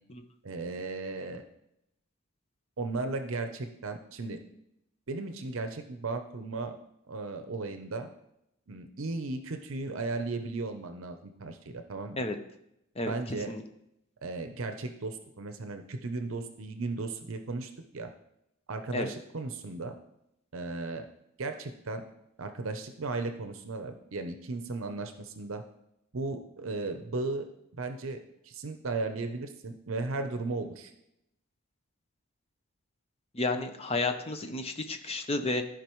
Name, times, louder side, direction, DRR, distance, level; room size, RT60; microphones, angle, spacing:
voice 1, 0.4-1.4 2.8-4.4 5.1-6.8 7.1-8.1 8.7-12.2 13.0-13.5 14.2-18.1 18.7-20.0 20.5-21.1 21.4-22.1 22.4-25.6 26.1-27.5 27.8-30.9, right 3 dB, 65° right, 7 dB, 0.7 m, -36 dB
voice 2, 13.0-13.6 18.9-19.1 33.3-35.6, left 2 dB, 30° left, 7 dB, 0.7 m, -32 dB
13.5 x 5.1 x 3.1 m, 0.81 s
head